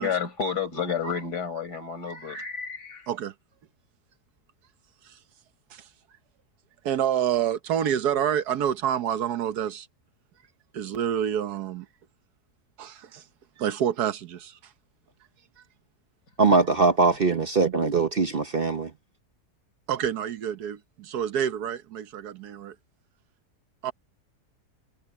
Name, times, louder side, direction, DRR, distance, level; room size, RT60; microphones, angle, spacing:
voice 1, 0.0-3.1, left 6 dB, 80° left, 5.1 m, -30 dB
voice 2, 6.8-9.9 10.7-11.9 12.8-13.2 13.6-14.7 19.9-22.7 23.8-23.9, right 9 dB, 75° right, 1.5 m, -28 dB
voice 3, 16.4-18.9, right 4 dB, 40° right, 0.9 m, -21 dB
omnidirectional pair, 1.7 m